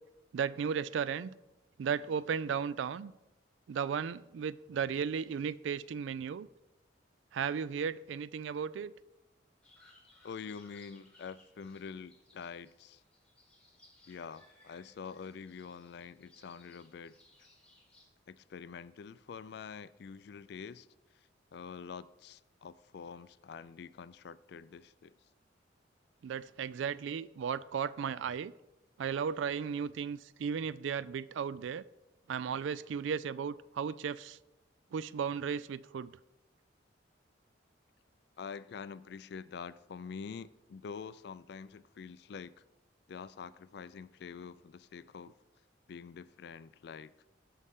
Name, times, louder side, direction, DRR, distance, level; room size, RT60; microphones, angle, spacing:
voice 1, 0.3-1.3 1.8-3.1 3.7-6.5 7.3-8.9 26.2-28.5 29.0-31.8 32.3-34.4 34.9-36.1, right 7 dB, 80° right, 0.3 m, -35 dB
sound 1, 9.6-18.1, left 2 dB, 5° left, 1.7 m, -64 dB
voice 2, 10.2-13.0 14.1-17.1 18.3-20.9 21.5-25.2 38.4-42.5 43.1-45.3 45.9-47.1, left 6 dB, 60° left, 0.3 m, -46 dB
16.5 x 5.5 x 3.6 m
head